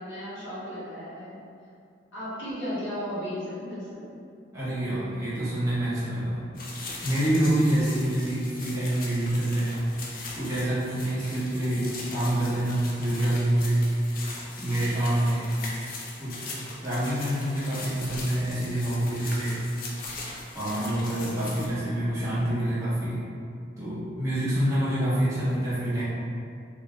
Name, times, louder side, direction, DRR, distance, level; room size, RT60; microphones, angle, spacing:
voice 1, 0.0-1.4 2.1-4.0, equal, 85° left, -11 dB, 1.2 m, -35 dB
voice 2, 4.5-6.4 7.0-9.9 10.4-15.6 16.2-16.4 16.8-19.6 20.5-23.2 23.8-26.0, right 1 dB, 15° right, -11 dB, 0.9 m, -26 dB
sound 1, 6.5-21.7, left 3 dB, 50° left, 0.4 m, -40 dB
2.6 x 2.3 x 3.1 m, 2.4 s
head